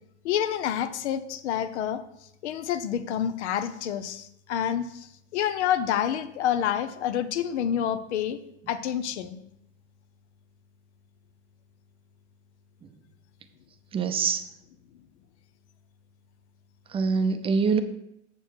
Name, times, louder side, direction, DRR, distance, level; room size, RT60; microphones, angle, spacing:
voice 1, 0.2-2.0 2.4-8.4 8.7-9.4, left 9 dB, 75° left, 11 dB, 0.8 m, -28 dB
voice 2, 13.9-14.4 16.9-17.8, right 5 dB, 15° right, 8 dB, 0.5 m, -24 dB
7.2 x 7.1 x 4.4 m, 0.79 s
supercardioid pair, 130°, 34 cm